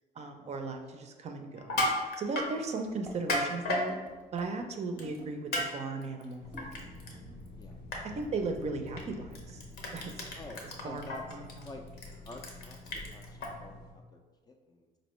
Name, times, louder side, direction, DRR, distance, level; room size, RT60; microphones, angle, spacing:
voice 1, 0.2-1.8 2.2-4.0 4.3-7.4 8.2-9.6 9.9-10.4 10.8-11.7, right 3 dB, 40° right, 5 dB, 0.5 m, -37 dB
Crushing, 1.6-2.5 3.1-3.8 5.0-5.2 5.5-5.7 6.0-7.1 7.5-7.6 7.9-8.0 8.9-9.0 9.3-13.5, left 1 dB, 70° left, 0.8 m, -33 dB
sound 1, 2.9-5.5 6.5-7.0, equal, 5° right, 0.8 m, -50 dB
sound 2, 6.4-13.9, left 1 dB, 90° left, 1.1 m, -49 dB
voice 2, 10.3-11.2 11.6-11.8 12.3-14.2 14.5-14.9, left 2 dB, 25° left, 4 dB, 0.4 m, -48 dB
4.2 x 2.7 x 3.0 m, 1.3 s
cardioid pair, 110°, 17 cm